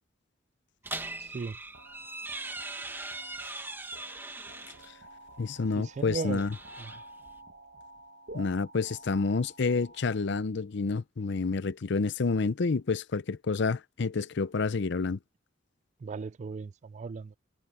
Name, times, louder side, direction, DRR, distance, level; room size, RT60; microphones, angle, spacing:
sound 1, 0.8-4.9 6.2-7.4, right 2 dB, 10° right, 1.4 m, -40 dB
voice 1, 1.2-1.6 5.8-6.5 6.8-6.9 16.0-17.3, right 4 dB, 40° right, 0.3 m, -37 dB
sound 2, 1.7-10.5, right 2 dB, 60° right, 1.7 m, -50 dB
voice 2, 5.4-6.5 8.3-15.2, left 4 dB, 65° left, 0.6 m, -29 dB
head